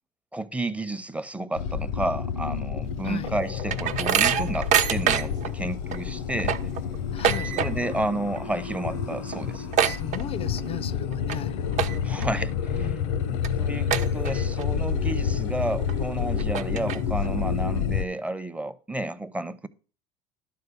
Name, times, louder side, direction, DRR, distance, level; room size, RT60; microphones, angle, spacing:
voice 1, 0.3-6.7 7.6-9.7 12.0-13.0 13.3-19.7, right 1 dB, 10° right, 0.6 m, -31 dB
sound 1, 1.6-18.1, left 7 dB, 80° left, 0.7 m, -29 dB
sound 2, 3.1-5.5 5.9-6.0 6.3-8.0 8.3-8.6 8.9-9.0 9.3-10.7 11.1-11.4 11.7-12.2 12.7-12.8 13.4-13.5 13.9-14.6 15.1-15.2 15.9-16.0 16.4-17.3, right 8 dB, 50° right, 0.8 m, -25 dB
voice 2, 7.1-7.6 9.8-11.6 12.8-13.5, left 8 dB, 40° left, 0.4 m, -37 dB
11.5 x 3.9 x 6.9 m
supercardioid pair, 90°, 16 cm